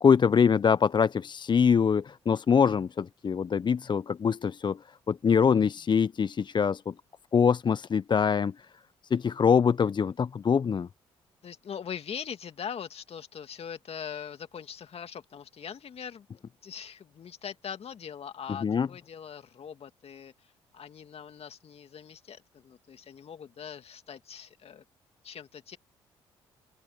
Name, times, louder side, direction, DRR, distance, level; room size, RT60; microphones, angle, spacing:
voice 1, 0.0-4.8 5.1-6.9 7.3-8.5 9.1-10.9 18.6-18.9, left 6 dB, 40° left, 0.6 m, -24 dB
voice 2, 11.4-16.3 16.6-20.3 20.7-24.8 25.2-25.8, left 7 dB, 55° left, 2.5 m, -41 dB
hypercardioid pair, 50°, 12 cm